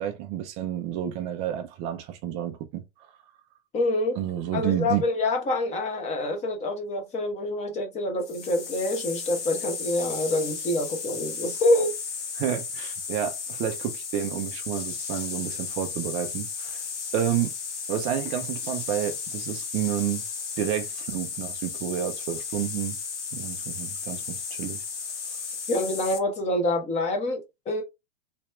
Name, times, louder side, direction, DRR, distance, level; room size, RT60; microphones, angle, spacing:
voice 1, 0.0-2.8 4.2-5.0 12.4-16.8 17.1-17.5 17.9-20.2 20.6-23.0 23.3-24.8, right 10 dB, 20° right, 0.3 m, -30 dB
voice 2, 3.7-4.2 4.5-12.0 25.7-27.8, left 1 dB, 20° left, 0.9 m, -26 dB
sound 1, 8.2-26.2, left 5 dB, 90° left, 1.7 m, -34 dB
3.3 x 3.0 x 3.1 m
supercardioid pair, 150°, 35 cm